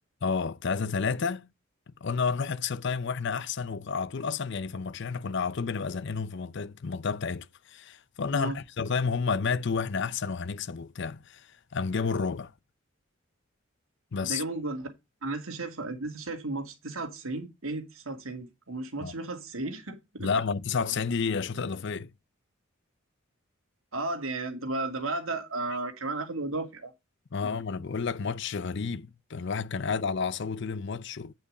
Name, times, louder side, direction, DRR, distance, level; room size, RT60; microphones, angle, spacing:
voice 1, 0.2-1.5 1.9-11.5 11.7-12.5 14.1-14.4 19.0-19.1 20.2-22.1 27.3-31.3, left 5 dB, 60° left, 0.6 m, -30 dB
voice 2, 14.2-14.9 15.2-20.3 23.9-26.9 27.4-27.5, right 2 dB, 80° right, 2.4 m, -34 dB
9.0 x 5.5 x 4.8 m
head